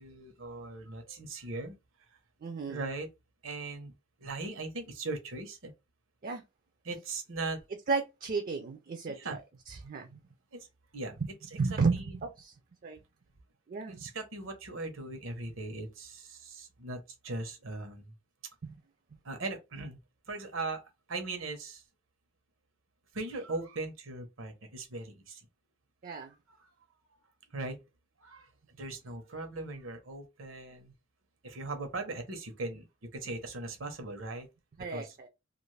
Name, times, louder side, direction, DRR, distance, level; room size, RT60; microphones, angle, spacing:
voice 1, 0.0-1.7 2.7-3.1 3.4-3.9 4.2-5.7 6.8-7.6 9.1-9.4 10.5-10.7 10.9-11.2 11.9-12.0 13.9-18.1 19.2-20.0 20.3-20.8 21.1-21.8 23.1-25.4 26.5-26.6 27.5-27.8 28.2-28.5 28.8-30.9 31.4-32.9 33.1-34.5 34.9-35.1, right 2 dB, 80° right, 0.9 m, -39 dB
voice 2, 2.4-2.9 6.2-6.4 7.9-9.4 9.7-10.2 11.2-12.5 12.8-13.0 13.7-14.1 18.6-18.8 26.0-26.3 34.8-35.3, right 4 dB, 45° right, 0.4 m, -33 dB
2.5 x 2.5 x 3.2 m
head